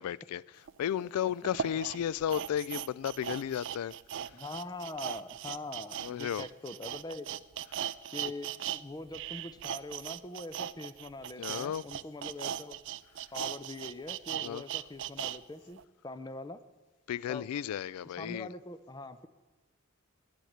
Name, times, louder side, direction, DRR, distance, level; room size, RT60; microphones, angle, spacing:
voice 1, 0.0-3.9 6.0-6.5 11.4-11.8 14.4-14.6 17.1-18.5, left 9 dB, 85° left, 0.3 m, -34 dB
sound 1, 0.7-0.8 1.4-8.8 9.1-15.4 15.8-15.9, right 10 dB, 55° right, 0.3 m, -38 dB
voice 2, 4.3-7.3 8.1-12.8 13.3-16.6 17.3-17.4 18.2-19.3, left 2 dB, 20° left, 0.5 m, -43 dB
10.0 x 9.1 x 7.9 m
head